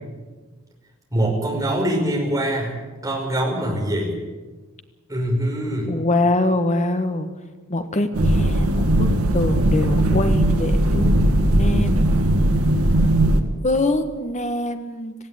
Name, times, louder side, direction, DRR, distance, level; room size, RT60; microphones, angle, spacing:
voice 1, 1.1-2.7 3.0-4.1 5.1-5.9, right 1 dB, 15° right, -1 dB, 5.7 m, -23 dB
voice 2, 5.9-7.3 7.7-9.1 9.3-12.0 13.6-15.1, left 2 dB, 35° left, 8 dB, 1.5 m, -24 dB
sound 1, 8.1-13.4, right 1 dB, 85° right, 2.0 m, -18 dB
18.5 x 16.5 x 9.1 m, 1.3 s
head